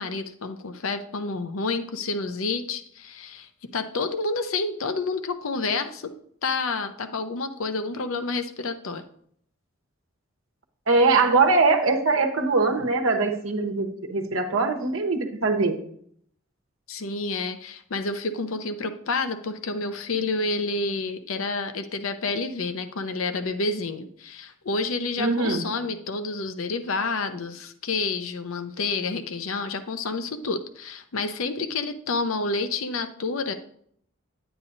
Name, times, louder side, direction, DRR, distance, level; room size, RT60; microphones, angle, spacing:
voice 1, 0.0-6.1 6.4-9.0 16.9-33.5, left 3 dB, 90° left, 8 dB, 0.7 m, -29 dB
voice 2, 10.9-15.8 25.2-25.6, right 3 dB, 85° right, 5 dB, 1.0 m, -22 dB
9.8 x 8.9 x 2.6 m, 0.66 s
head